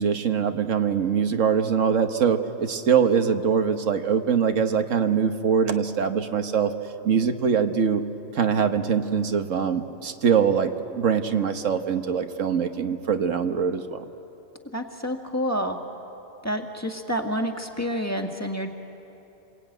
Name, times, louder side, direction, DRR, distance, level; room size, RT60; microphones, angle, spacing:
voice 1, 0.0-6.7 7.0-8.0 8.3-14.0, right 7 dB, 80° right, 7 dB, 1.5 m, -23 dB
voice 2, 14.7-15.8 16.4-18.7, equal, 15° left, 3 dB, 1.7 m, -28 dB
28.5 x 22.5 x 9.2 m, 3.0 s
omnidirectional pair, 1.3 m